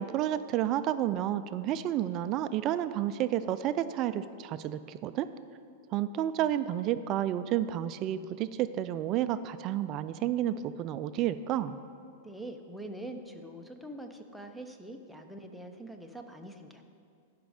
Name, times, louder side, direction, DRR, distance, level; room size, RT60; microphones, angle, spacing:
voice 1, 0.0-5.3 5.9-11.8, right 11 dB, 40° right, 13 dB, 0.3 m, -31 dB
voice 2, 12.2-16.8, right 1 dB, ahead, 5 dB, 0.7 m, -44 dB
11.5 x 5.2 x 4.9 m, 2.4 s
hypercardioid pair, 130°, 0 cm